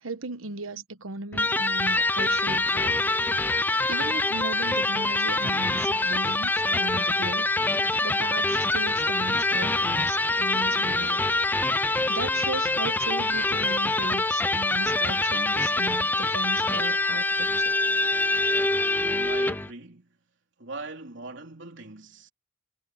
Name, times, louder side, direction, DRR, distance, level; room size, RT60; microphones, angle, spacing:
voice 1, 0.0-3.0 3.9-7.5 8.0-11.2 12.1-17.7, right 2 dB, 90° right, 1.2 m, -36 dB
Electric guitar, 1.3-19.7, left 2 dB, 10° left, 0.5 m, -25 dB
voice 2, 19.0-20.2 20.6-22.3, right 3 dB, 60° right, 3.7 m, -41 dB
head